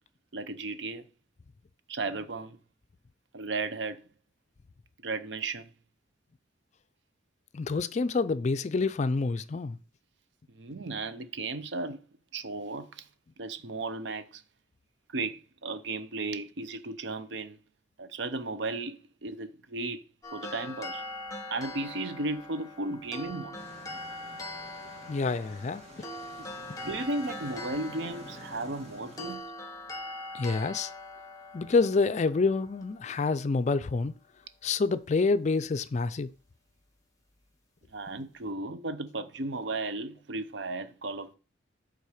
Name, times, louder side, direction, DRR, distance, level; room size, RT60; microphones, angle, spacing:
voice 1, 0.3-1.0 1.9-2.6 3.3-4.0 5.0-5.7 10.5-12.0 12.3-13.1 13.4-14.4 15.1-17.6 18.0-20.0 20.3-21.0 21.5-23.6 26.8-29.4 37.9-41.4, right 3 dB, 75° right, 0.7 m, -35 dB
voice 2, 7.5-9.8 25.1-26.1 30.3-30.9 31.5-34.1 34.6-36.3, left 4 dB, 40° left, 0.4 m, -27 dB
sound 1, 20.2-33.5, left 2 dB, 20° left, 1.1 m, -42 dB
sound 2, 23.5-29.4, right 2 dB, 35° right, 1.5 m, -49 dB
8.3 x 3.9 x 4.9 m
head